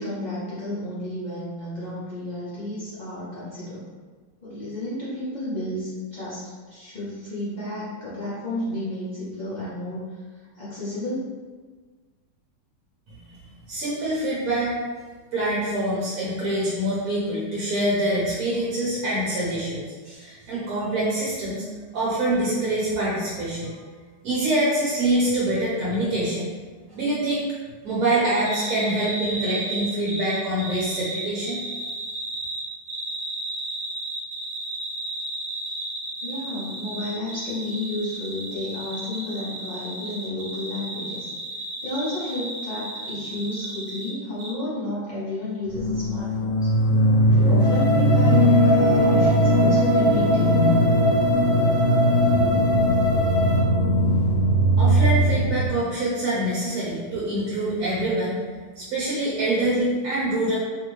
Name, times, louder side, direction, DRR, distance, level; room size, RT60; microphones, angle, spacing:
voice 1, 0.0-3.8 4.4-10.2 10.6-11.3 36.2-41.3 41.8-46.7 47.3-50.6, left 1 dB, 45° left, -11 dB, 0.5 m, -32 dB
voice 2, 13.7-14.7 15.3-21.6 21.9-23.8 24.2-26.5 26.9-27.5 27.8-31.6 54.8-58.4 58.8-60.5, right 1 dB, 65° right, -7 dB, 1.1 m, -25 dB
sound 1, 28.4-44.1 44.4-44.5, right 1 dB, 85° right, 1.3 m, -33 dB
sound 2, 45.7-55.7, equal, 85° left, 1.3 m, -19 dB
sound 3, 47.6-53.6, right 1 dB, 5° right, 1.1 m, -24 dB
2.9 x 2.7 x 3.0 m, 1.4 s
omnidirectional pair, 1.8 m